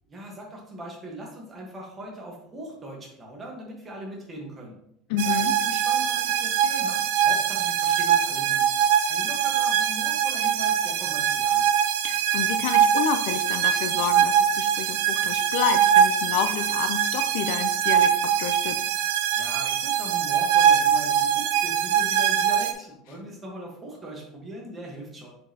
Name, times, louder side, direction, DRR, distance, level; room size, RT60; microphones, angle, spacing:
voice 1, 0.1-4.8 5.1-8.6 9.1-11.6 19.3-25.4, right 1 dB, 15° right, -1 dB, 1.3 m, -40 dB
voice 2, 5.1-5.5 12.0-18.8, left 8 dB, 65° left, 9 dB, 0.4 m, -29 dB
sound 1, 5.2-22.7, right 9 dB, 85° right, 0.6 m, -23 dB
6.6 x 5.2 x 2.8 m, 0.75 s
cardioid pair, 180°, 0 cm